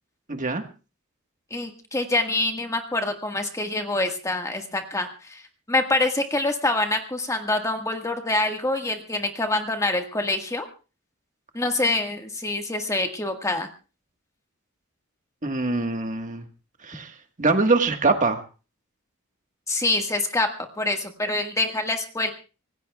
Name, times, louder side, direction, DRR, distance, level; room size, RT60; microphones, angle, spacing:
voice 1, 0.3-0.6 15.4-16.4 16.8-17.1 17.4-18.4, right 3 dB, 35° right, 6 dB, 1.5 m, -23 dB
voice 2, 1.5-5.4 5.7-10.7 11.5-13.7 19.7-20.5 20.8-22.3, left 2 dB, 15° left, 4 dB, 1.6 m, -25 dB
25.5 x 19.0 x 2.3 m, 0.33 s
head